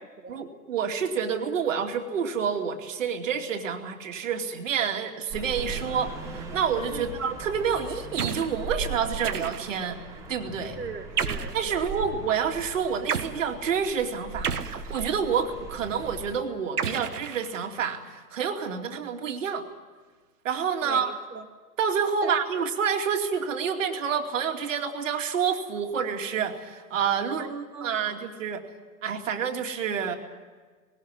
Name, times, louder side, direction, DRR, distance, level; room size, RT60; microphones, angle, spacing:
voice 1, 0.3-10.0 10.3-10.8 11.5-19.6 20.4-21.1 21.8-27.5 27.8-28.6 29.0-30.2, right 7 dB, 50° right, 4 dB, 2.6 m, -28 dB
sound 1, 5.3-16.4, right 3 dB, 5° right, 2.6 m, -39 dB
sound 2, 8.2-8.6 9.2-9.9 11.2-11.6 13.1-13.4 14.4-15.3 16.8-17.8, right 7 dB, 70° right, 1.6 m, -31 dB
voice 2, 10.6-11.9 20.8-21.5 22.2-22.6 27.3-28.2, right 5 dB, 90° right, 4 dB, 1.5 m, -40 dB
20.0 x 18.0 x 9.8 m, 1.4 s
figure-of-eight pair, 130°, 48 cm